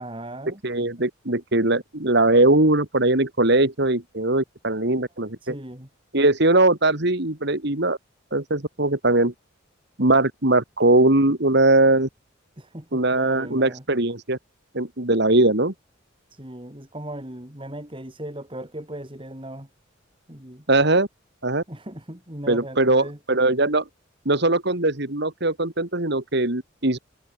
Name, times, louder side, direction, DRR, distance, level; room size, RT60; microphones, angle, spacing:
voice 1, 0.0-0.6 4.8-4.9 5.4-5.9 12.6-13.8 16.3-19.7 20.3-20.7 21.7-23.2, right 1 dB, 25° right, 3.9 m, -37 dB
voice 2, 0.6-5.6 6.1-8.0 8.3-9.3 10.0-12.1 12.9-14.4 14.7-15.7 20.7-21.1 21.4-21.6 22.5-23.8 24.2-27.0, right 2 dB, 55° right, 2.7 m, -20 dB
head